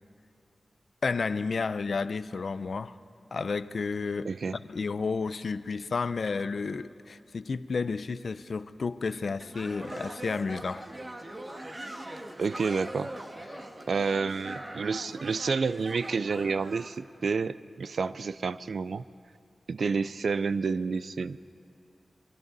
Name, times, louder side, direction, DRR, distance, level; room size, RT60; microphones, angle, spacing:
voice 1, 1.0-3.0 3.3-10.9 13.5-13.6, left 4 dB, 65° left, 0.5 m, -31 dB
voice 2, 4.2-4.6 12.4-13.1 13.9-19.0 19.7-21.4, right 4 dB, 75° right, 0.4 m, -29 dB
sound 1, 9.4-16.9, right 1 dB, 30° right, 1.6 m, -42 dB
28.5 x 23.5 x 4.1 m
wide cardioid pair, 80°, 0 cm